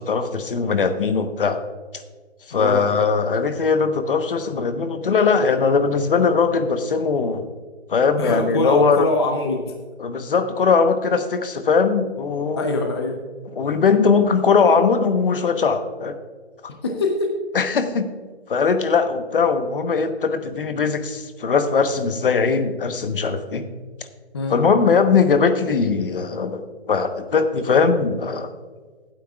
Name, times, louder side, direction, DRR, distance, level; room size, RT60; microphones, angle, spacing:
voice 1, 0.0-1.6 2.5-7.5 7.9-9.1 10.0-12.6 13.6-16.2 17.5-18.1 18.5-23.6 24.5-26.6 26.9-28.5, left 5 dB, 55° left, 9 dB, 1.1 m, -20 dB
voice 2, 2.5-2.9 8.2-9.7 12.6-13.2 16.8-17.4 24.3-24.6, left 2 dB, 25° left, 4 dB, 0.6 m, -23 dB
16.0 x 9.2 x 2.4 m, 1.4 s
hypercardioid pair, 160°, 32 cm